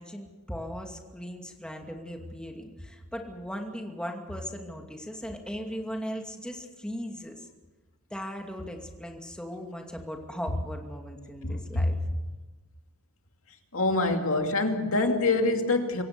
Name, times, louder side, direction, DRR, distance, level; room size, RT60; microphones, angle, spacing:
voice 1, 0.0-7.4 8.1-12.0, equal, 5° left, 2 dB, 2.5 m, -38 dB
voice 2, 11.4-11.9 13.7-16.0, left 2 dB, 65° left, 4 dB, 2.5 m, -25 dB
25.5 x 16.0 x 6.9 m, 1.2 s
head